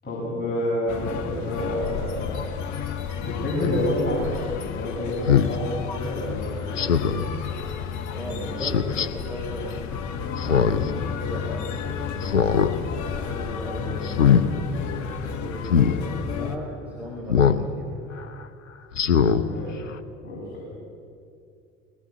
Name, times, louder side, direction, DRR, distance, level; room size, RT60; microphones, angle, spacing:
voice 1, 0.0-2.4 3.2-7.2 19.0-19.8 20.2-20.7, left 1 dB, 25° left, -6 dB, 7.6 m, -29 dB
sound 1, 0.9-16.6, left 7 dB, 50° left, 1.7 m, -32 dB
Speech synthesizer, 3.6-3.8 5.3-5.5 6.8-7.2 8.6-9.1 10.4-10.9 11.3-11.4 12.2-12.7 13.1-13.4 14.0-14.4 15.7-15.9 17.3-17.6 18.1-18.2 18.9-19.4 19.9-20.0, left 7 dB, 80° left, 0.9 m, -20 dB
voice 2, 8.1-9.9 10.4-17.9, right 1 dB, 5° right, -3 dB, 4.6 m, -37 dB
22.0 x 19.0 x 8.7 m, 2.4 s
figure-of-eight pair, 70°, 37 cm